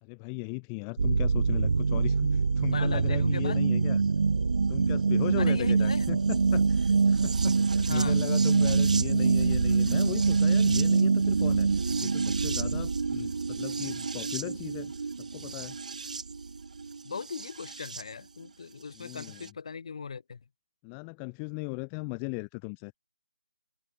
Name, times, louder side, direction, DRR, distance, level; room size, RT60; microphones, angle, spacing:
voice 1, 0.0-4.0 4.7-11.7 12.0-14.9 15.3-15.8 19.0-19.5 20.8-22.9, left 40 dB or more, 10° left, 2.2 m, -37 dB
sound 1, 1.0-18.0 19.2-19.3, right 4 dB, 55° right, 1.6 m, -25 dB
voice 2, 2.7-3.6 5.4-6.1 7.8-8.2 17.0-20.4, left 5 dB, 40° left, 6.4 m, -39 dB
hypercardioid pair, 175°, 5 cm